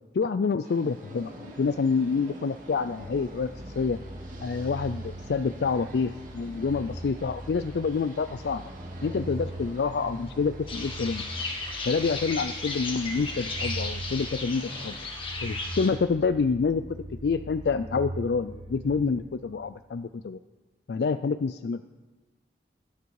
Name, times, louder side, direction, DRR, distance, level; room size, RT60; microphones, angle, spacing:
voice 1, 0.1-4.0 4.4-8.7 9.0-11.2 11.8-15.0 15.4-16.8 17.2-20.4 20.9-21.8, left 5 dB, 70° left, 11 dB, 0.4 m, -27 dB
sound 1, 0.6-14.9, right 1 dB, 45° right, 2.5 m, -47 dB
sound 2, 2.9-19.8, right 1 dB, 30° right, 1.3 m, -41 dB
sound 3, 10.7-15.9, left 3 dB, 30° left, 1.9 m, -35 dB
21.0 x 9.6 x 4.7 m, 1.3 s
head